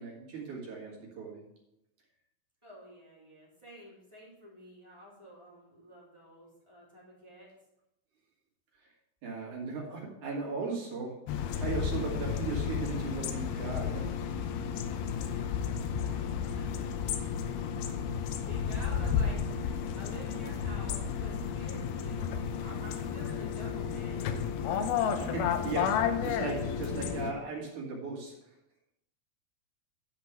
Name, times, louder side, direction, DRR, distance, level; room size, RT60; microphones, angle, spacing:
voice 1, 0.0-1.5 9.2-14.2 16.0-16.2 18.3-18.4 24.6-24.8 25.2-28.5, right 4 dB, 50° right, -3 dB, 3.6 m, -38 dB
voice 2, 2.6-7.5 16.5-16.9 17.4-24.6, equal, 10° right, -6 dB, 2.8 m, -50 dB
sound 1, 11.3-27.3, left 7 dB, 75° left, 2.5 m, -32 dB
12.0 x 5.2 x 6.1 m, 0.84 s
omnidirectional pair, 4.7 m